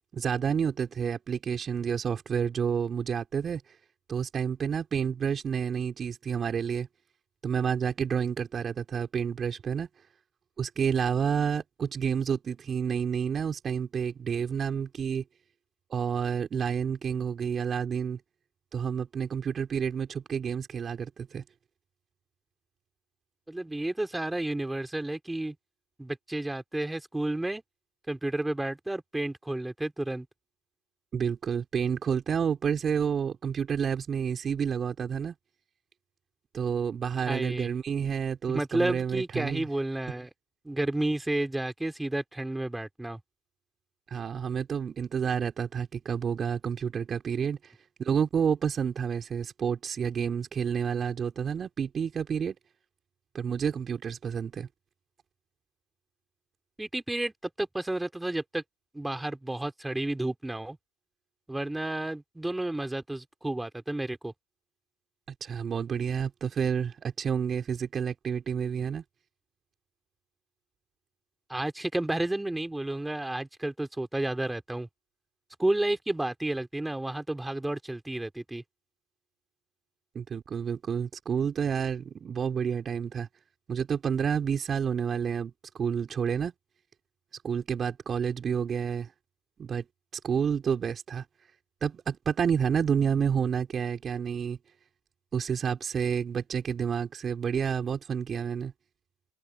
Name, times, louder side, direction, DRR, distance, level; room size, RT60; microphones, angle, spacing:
voice 1, 0.1-3.6 4.1-6.9 7.4-9.9 10.6-15.2 15.9-18.2 18.7-21.4 31.1-35.3 36.5-39.7 44.1-47.7 48.0-52.6 53.3-54.7 65.4-69.0 80.1-83.3 83.7-86.5 87.4-89.1 89.6-89.9 90.2-91.3 91.8-94.6 95.3-98.7, right 7 dB, 30° right, 4.2 m, -29 dB
voice 2, 23.5-25.6 26.0-27.6 28.1-30.3 37.2-37.7 38.5-40.3 40.6-43.2 56.8-58.6 58.9-60.8 61.5-64.3 71.5-74.9 75.6-78.6, right 1 dB, 5° right, 4.0 m, -31 dB
open air
hypercardioid pair, 95°, 0 cm